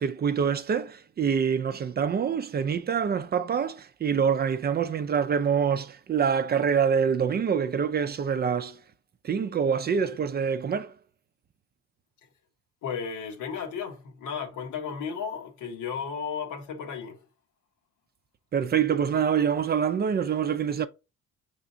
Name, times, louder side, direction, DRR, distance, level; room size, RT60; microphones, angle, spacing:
voice 1, 0.0-8.8 9.2-10.9 18.5-20.9, right 7 dB, 35° right, 0.4 m, -25 dB
voice 2, 12.8-17.2, left 6 dB, 85° left, 1.1 m, -34 dB
4.9 x 3.4 x 2.6 m
cardioid pair, 90°, 30 cm